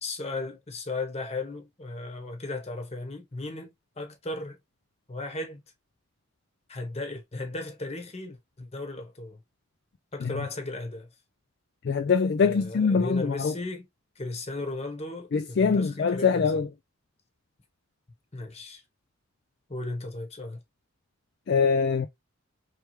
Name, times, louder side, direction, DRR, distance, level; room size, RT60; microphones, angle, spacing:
voice 1, 0.0-4.6 5.1-5.6 6.7-9.4 10.1-11.1 12.4-13.9 14.2-16.6 18.3-18.8 19.7-20.6, left 2 dB, 30° left, 1.2 m, -36 dB
voice 2, 11.8-13.5 15.3-16.7 21.5-22.1, left 5 dB, 55° left, 0.4 m, -23 dB
4.4 x 3.4 x 3.2 m
head